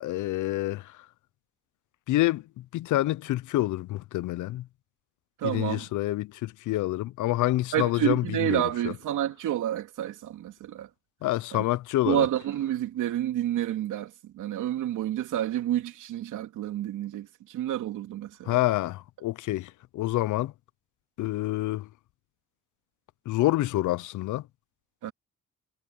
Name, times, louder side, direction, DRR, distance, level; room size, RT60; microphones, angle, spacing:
voice 1, 0.0-0.9 2.1-2.4 2.7-4.6 5.4-8.9 11.2-12.3 18.5-20.5 21.2-21.9 23.3-24.4, left 16 dB, 80° left, 0.7 m, -27 dB
voice 2, 5.4-5.8 7.7-10.9 11.5-11.6 12.0-18.6 25.0-25.1, right 12 dB, 85° right, 3.0 m, -29 dB
cardioid pair, 90°, 30 cm